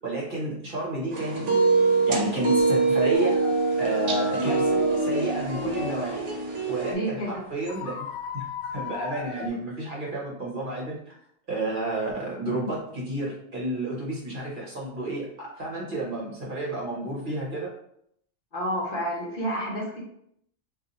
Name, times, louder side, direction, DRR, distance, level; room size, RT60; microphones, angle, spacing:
voice 1, 0.0-1.5 2.1-3.4 3.8-6.3 6.7-8.0 8.3-11.2 11.5-17.7, right 2 dB, 45° right, -4 dB, 1.1 m, -31 dB
sound 1, 1.1-6.9, right 3 dB, 90° right, 1.1 m, -24 dB
sound 2, 3.1-7.4 7.6-9.5, left 5 dB, 85° left, 0.9 m, -37 dB
voice 2, 6.9-7.4 18.5-20.0, right 1 dB, 50° left, -4 dB, 1.0 m, -29 dB
2.7 x 2.6 x 3.8 m, 0.71 s
omnidirectional pair, 1.2 m